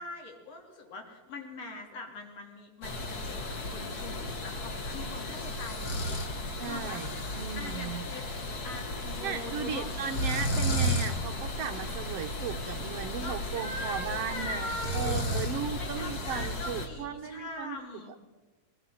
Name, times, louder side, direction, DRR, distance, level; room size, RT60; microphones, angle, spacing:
voice 1, 0.0-7.0 7.4-8.2 8.6-9.9 13.2-15.2 15.8-18.1, left 2 dB, 55° left, 2 dB, 4.2 m, -42 dB
sound 1, 2.8-16.9, left 1 dB, 35° left, 2.1 m, -34 dB
voice 2, 6.6-8.0 9.2-17.8 18.1-18.2, right 8 dB, 70° right, 6 dB, 1.6 m, -36 dB
22.0 x 18.5 x 7.7 m, 1.2 s
omnidirectional pair, 3.4 m